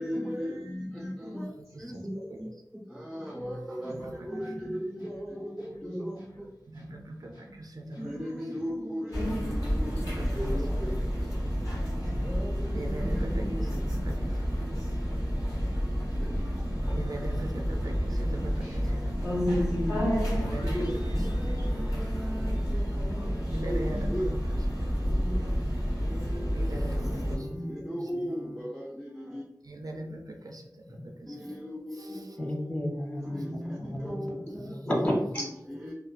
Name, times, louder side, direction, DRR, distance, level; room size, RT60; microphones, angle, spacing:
voice 1, 0.0-1.5 1.8-2.5 2.9-6.5 8.0-9.9 10.2-11.2 12.2-14.3 16.2-16.7 18.6-19.1 20.7-24.3 25.0-29.4 31.3-32.7 33.2-34.8 35.4-35.9, equal, ahead, -3 dB, 0.5 m, -37 dB
voice 2, 1.6-2.4 3.8-4.7 6.7-8.3 9.9-10.6 12.7-14.6 16.9-19.2 20.3-22.4 23.5-25.3 26.5-28.1 29.6-31.5 31.9-32.4, right 1 dB, 60° right, 2 dB, 0.4 m, -42 dB
sound 1, 3.2-18.4, right 1 dB, 90° left, 0.9 m, -54 dB
sound 2, 9.1-27.4, equal, 50° left, 1.3 m, -29 dB
sound 3, 19.7-22.9, left 2 dB, 75° left, 0.4 m, -46 dB
voice 3, 32.4-34.1 34.6-35.4, equal, 25° left, -5 dB, 1.4 m, -32 dB
2.9 x 2.1 x 2.4 m, 0.79 s
wide cardioid pair, 45°, 7 cm